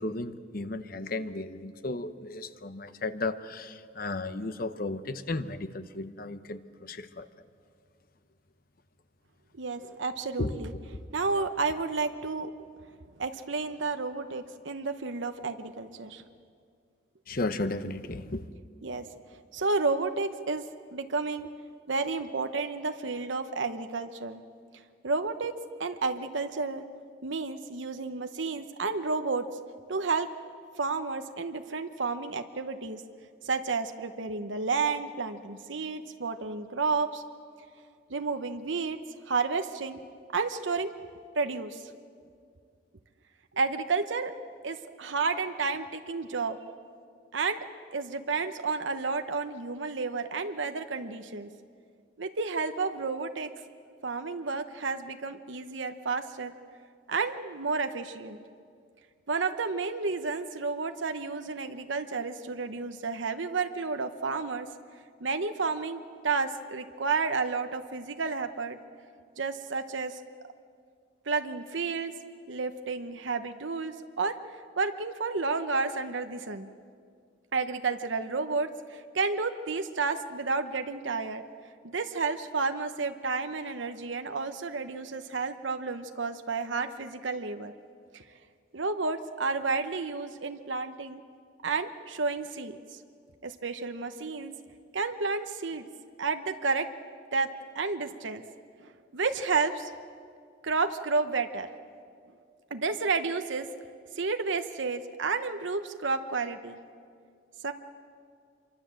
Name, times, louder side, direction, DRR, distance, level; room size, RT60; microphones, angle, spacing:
voice 1, 0.0-7.3 10.4-10.6 17.3-18.4, left 2 dB, 50° left, 11 dB, 1.0 m, -34 dB
voice 2, 9.6-10.7 11.1-12.5 13.2-16.2 18.8-19.1 19.5-20.6 20.9-21.5 21.9-24.4 25.0-26.8 27.2-29.5 29.9-30.3 30.8-33.0 33.4-37.2 38.1-40.0 40.3-40.9 41.3-41.9 43.5-44.3 44.6-46.6 47.3-47.7 47.9-51.5 52.2-53.5 54.0-56.5 57.1-58.4 59.3-64.7 65.2-68.8 69.4-70.2 71.3-72.2 72.5-74.4 74.8-76.7 77.5-81.4 81.8-87.7 88.1-88.2 88.7-91.2 91.6-93.0 93.4-94.5 94.9-95.9 96.2-96.9 97.3-98.4 98.8-99.9 100.6-101.7 102.7-103.7 104.2-106.8 107.6-107.7, right 4 dB, 75° right, 7 dB, 1.0 m, -31 dB
26.5 x 23.5 x 7.6 m, 2.2 s
head